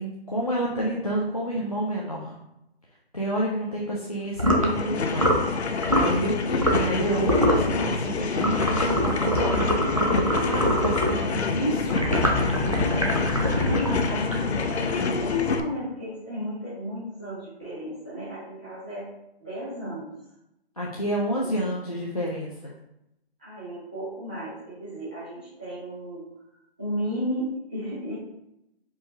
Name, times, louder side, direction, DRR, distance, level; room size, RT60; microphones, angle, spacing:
voice 1, 0.0-2.4 3.1-12.0 20.8-22.8, right 1 dB, 35° left, -4 dB, 0.4 m, -29 dB
sound 1, 4.4-4.7 5.2-5.5 5.8-6.1 6.6-7.0 7.2-7.7 8.4-11.2 11.9-14.7, equal, 35° right, 0.4 m, -24 dB
sound 2, 4.6-15.6, left 4 dB, 90° left, 0.6 m, -27 dB
voice 2, 13.3-19.1 19.4-20.1 23.4-26.3 26.8-28.1, equal, 10° right, -15 dB, 0.9 m, -34 dB
4.6 x 2.8 x 3.3 m, 0.86 s
hypercardioid pair, 175°, 32 cm